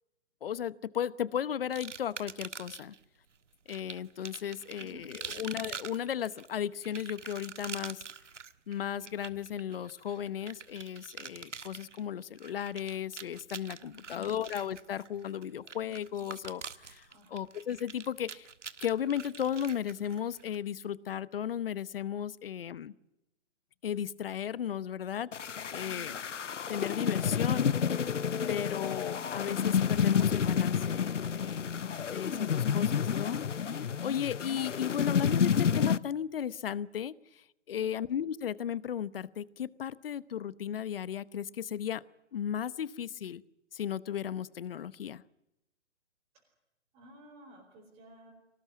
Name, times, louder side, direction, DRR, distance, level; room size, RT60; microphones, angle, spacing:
voice 1, 0.4-2.9 3.7-8.0 8.7-17.0 17.3-18.5 18.8-22.9 23.8-25.3 25.7-26.2 26.7-27.7 28.5-31.7 32.1-42.0 42.3-43.4 43.7-45.2, left 9 dB, 50° left, 19 dB, 1.0 m, -35 dB
sound 1, 1.7-3.0 3.7-20.6, right 6 dB, 85° right, 1.6 m, -45 dB
voice 2, 4.8-5.5 13.7-14.4 17.1-17.5 25.8-26.2 37.8-38.0 46.3-46.5 46.9-48.3, equal, 15° right, -3 dB, 5.0 m, -54 dB
sound 2, 25.3-36.0, left 7 dB, 85° left, 0.9 m, -30 dB
24.0 x 19.5 x 9.3 m, 0.91 s
hypercardioid pair, 150°, 35 cm